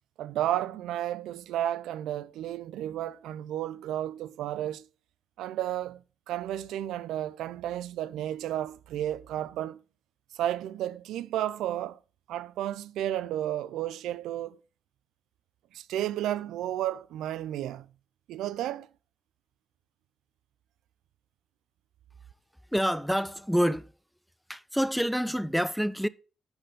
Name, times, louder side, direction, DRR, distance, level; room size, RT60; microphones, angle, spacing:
voice 1, 0.2-4.9 5.4-9.8 10.3-12.0 12.3-14.6 15.7-17.9 18.3-18.9, right 12 dB, 85° right, 0.4 m, -32 dB
voice 2, 22.7-23.9 24.5-26.1, equal, ahead, 0.4 m, -27 dB
10.5 x 4.4 x 5.0 m
cardioid pair, 90°, 0 cm